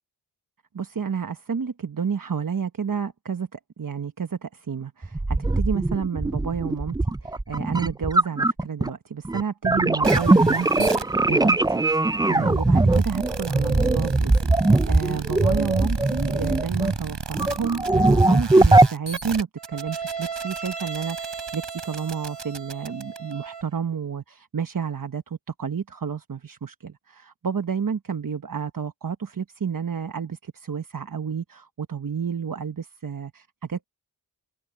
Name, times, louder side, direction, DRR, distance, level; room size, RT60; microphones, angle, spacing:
voice 1, 0.7-6.9 7.2-33.9, right 6 dB, 50° right, 1.1 m, -30 dB
sound 1, 5.0-8.9 9.2-17.0 17.3-18.9, right 2 dB, 10° right, 0.4 m, -20 dB
sound 2, 10.0-23.6, right 5 dB, 85° right, 4.2 m, -35 dB
wide cardioid pair, 65°, 42 cm